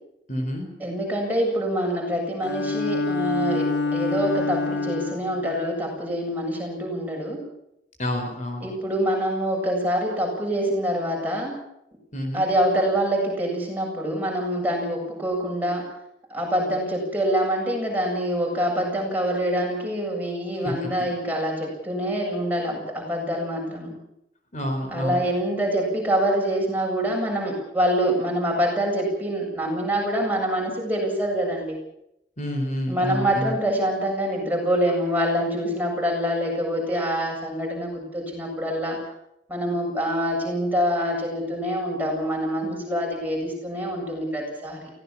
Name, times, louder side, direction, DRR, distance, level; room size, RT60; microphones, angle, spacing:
voice 1, 0.3-0.7 8.0-8.7 12.1-12.5 20.6-21.1 24.5-25.2 32.4-33.5, equal, 40° left, 4 dB, 4.5 m, -29 dB
voice 2, 0.8-7.4 8.6-11.6 12.3-15.8 16.3-23.9 24.9-31.8 32.9-39.0 39.5-44.9, equal, 10° right, -1 dB, 7.7 m, -25 dB
Bowed string instrument, 2.4-5.5, left 3 dB, 75° left, 1.8 m, -26 dB
24.0 x 17.5 x 7.4 m, 0.81 s
head